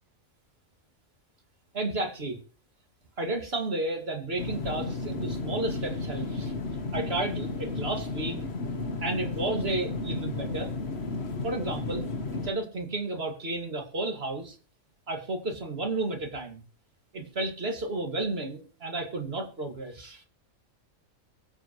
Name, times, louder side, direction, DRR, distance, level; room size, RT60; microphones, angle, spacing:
voice 1, 1.7-2.4 3.2-6.5 6.9-8.4 9.0-10.7 11.4-12.0 12.3-14.6 15.1-16.6 17.1-20.2, right 2 dB, 45° right, 4 dB, 2.4 m, -32 dB
sound 1, 4.4-12.5, left 3 dB, 50° left, 1.5 m, -33 dB
23.0 x 8.0 x 3.1 m, 0.37 s
omnidirectional pair, 1.5 m